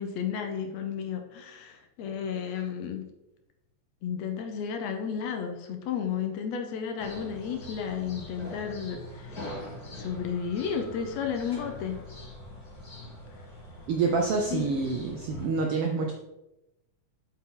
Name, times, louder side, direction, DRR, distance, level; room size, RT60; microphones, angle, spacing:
voice 1, 0.0-3.1 4.0-9.5 10.0-12.0 14.5-14.7, left 7 dB, 70° left, 5 dB, 1.9 m, -33 dB
sound 1, 7.0-15.5, left 1 dB, 35° left, 2.2 m, -43 dB
voice 2, 13.9-16.1, right 4 dB, 75° right, 2 dB, 1.3 m, -27 dB
8.2 x 5.8 x 3.7 m, 0.95 s
omnidirectional pair, 3.3 m